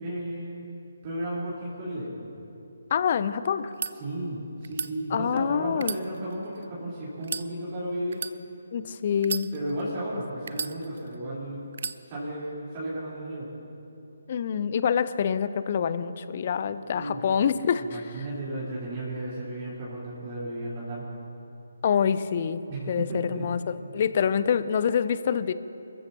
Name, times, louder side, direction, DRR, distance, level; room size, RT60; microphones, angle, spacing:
voice 1, 0.0-2.1 3.9-8.2 9.5-11.7 12.0-13.5 16.9-17.2 17.9-21.0 22.7-23.5, right 1 dB, 35° right, -9 dB, 4.0 m, -34 dB
voice 2, 2.9-3.7 5.1-6.0 8.7-9.5 14.3-18.0 21.8-22.6 22.9-23.6 23.9-25.5, left 7 dB, 40° left, 14 dB, 0.6 m, -26 dB
sound 1, 3.6-3.9 4.6-4.9 5.7-6.7 7.2-7.5 8.1-8.4 9.2-9.9 10.5-11.2 11.7-12.0, right 5 dB, 55° right, 0.5 m, -34 dB
28.5 x 14.5 x 2.9 m, 2.8 s
figure-of-eight pair, 145°, 0 cm